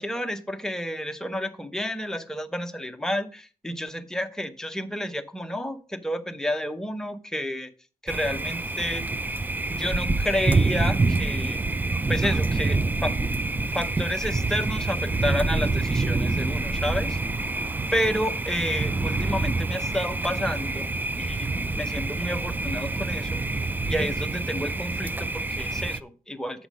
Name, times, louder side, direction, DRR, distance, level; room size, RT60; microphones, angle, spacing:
voice 1, 0.0-7.7 8.0-9.1 9.7-11.6 12.1-13.2 13.7-17.2 17.9-20.9 21.2-21.5 21.8-23.4 23.9-26.7, equal, 5° left, 6 dB, 0.8 m, -30 dB
Thunder, 8.1-26.0, right 3 dB, 10° right, 0.4 m, -26 dB
8.2 x 5.9 x 5.1 m, 0.37 s
cardioid pair, 115°, 15 cm